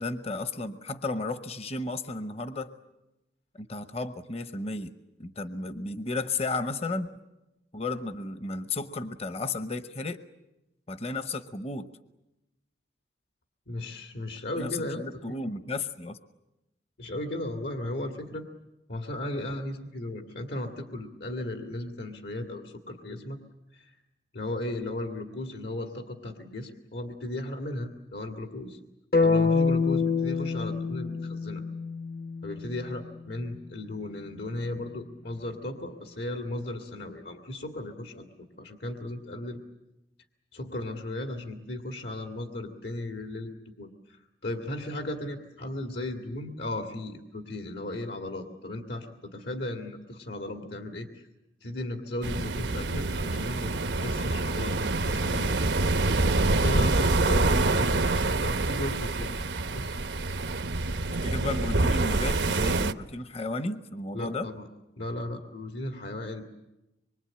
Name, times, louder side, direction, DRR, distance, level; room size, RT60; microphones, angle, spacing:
voice 1, 0.0-2.7 3.5-4.9 5.2-7.1 7.7-10.2 10.9-11.9 14.5-16.2 57.4-57.6 61.1-64.5, left 3 dB, 35° left, 11 dB, 0.9 m, -33 dB
voice 2, 13.7-15.0 17.0-18.5 18.9-23.4 23.7-24.0 24.3-28.8 29.2-31.6 32.4-39.6 40.5-51.3 51.6-55.7 56.4-59.3 59.7-60.0 64.1-64.7 65.0-66.4, left 1 dB, 75° left, 4 dB, 2.2 m, -36 dB
sound 1, 29.1-33.2, left 4 dB, 55° left, 1.2 m, -26 dB
sound 2, 52.2-62.9, right 2 dB, 85° right, 1.0 m, -26 dB
25.5 x 23.5 x 8.8 m, 0.94 s
head